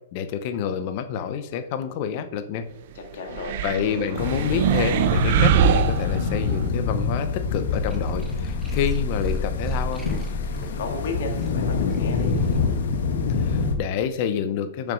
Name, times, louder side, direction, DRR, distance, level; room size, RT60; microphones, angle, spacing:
voice 1, 0.1-2.6 3.6-10.1 13.3-14.9, left 8 dB, 35° left, 9 dB, 0.7 m, -28 dB
voice 2, 2.9-3.6 10.6-12.3, left 4 dB, 55° left, 2 dB, 2.2 m, -33 dB
sound 1, 3.3-6.7, right 10 dB, 45° right, 0.6 m, -23 dB
sound 2, 4.2-13.8, left 5 dB, 75° left, 1.4 m, -26 dB
sound 3, 7.7-13.0, equal, 5° right, 0.9 m, -32 dB
6.9 x 6.8 x 6.3 m, 0.90 s
hypercardioid pair, 170°, 0 cm